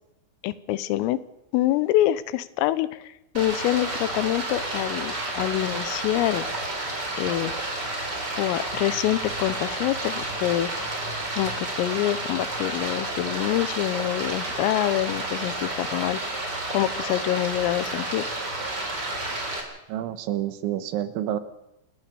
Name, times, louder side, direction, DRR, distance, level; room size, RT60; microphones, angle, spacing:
voice 1, 0.4-1.2 1.5-6.5 7.2-7.6 8.4-10.7 11.3-16.2 16.7-18.3, left 14 dB, 85° left, 15 dB, 3.6 m, -26 dB
Stream, 3.3-19.6, right 2 dB, 25° right, 3.8 m, -31 dB
voice 2, 19.9-21.4, right 12 dB, 75° right, 11 dB, 3.5 m, -28 dB
28.5 x 13.5 x 7.0 m, 0.88 s
omnidirectional pair, 5.8 m